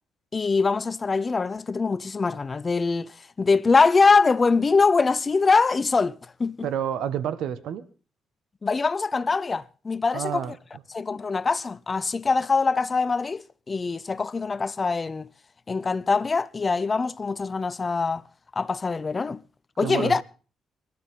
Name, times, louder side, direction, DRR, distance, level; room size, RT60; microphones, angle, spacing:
voice 1, 0.3-6.7 8.6-10.5 10.9-15.3 15.7-18.2 18.6-19.4 19.8-20.2, left 4 dB, 30° left, 0.7 m, -23 dB
voice 2, 6.6-7.8 10.1-10.6 19.8-20.2, right 9 dB, 80° right, 1.4 m, -29 dB
28.5 x 12.5 x 3.8 m
cardioid pair, 90°, 0 cm